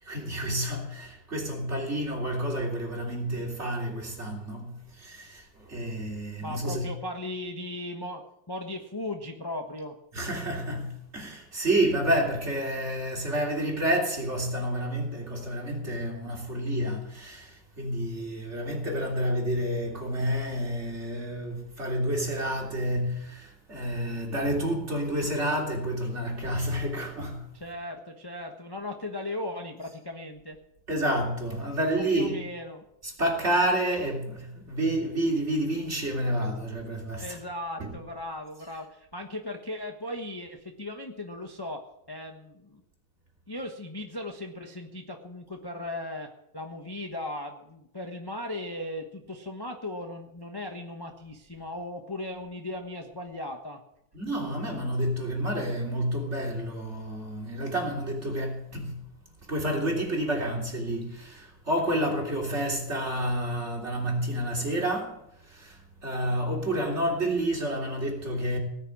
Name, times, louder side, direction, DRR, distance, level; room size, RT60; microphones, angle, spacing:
voice 1, 0.0-7.0 10.1-27.5 30.9-32.5 33.0-37.4 37.8-37.9 38.6-38.8 54.1-59.0 59.5-68.6, right 1 dB, 35° right, 3.7 m, -29 dB
voice 2, 6.4-9.9 27.6-30.6 31.9-32.8 37.2-41.8 42.1-42.8 43.5-53.8, left 1 dB, 15° left, 1.0 m, -37 dB
18.5 x 6.8 x 9.9 m
omnidirectional pair, 2.0 m